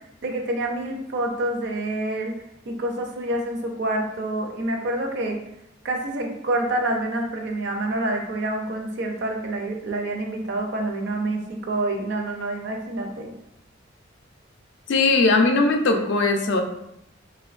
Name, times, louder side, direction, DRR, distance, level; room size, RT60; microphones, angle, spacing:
voice 1, 0.2-2.3 2.7-5.4 5.8-13.3, right 1 dB, 60° right, 3 dB, 0.4 m, -27 dB
voice 2, 14.9-16.6, left 3 dB, 60° left, 4 dB, 0.3 m, -19 dB
2.9 x 2.2 x 2.4 m, 0.79 s
head